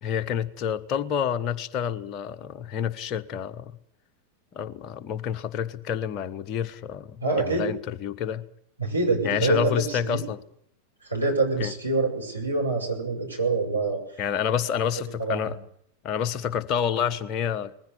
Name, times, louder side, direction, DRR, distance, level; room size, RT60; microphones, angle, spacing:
voice 1, 0.0-3.7 4.5-8.5 9.2-10.4 11.6-11.7 14.2-15.6 16.0-17.7, left 8 dB, 35° left, 1.4 m, -28 dB
voice 2, 7.2-7.7 8.8-10.2 11.0-14.2 15.2-15.6, right 3 dB, 85° right, 6.2 m, -26 dB
21.0 x 15.5 x 9.9 m
figure-of-eight pair, 90°, 0 cm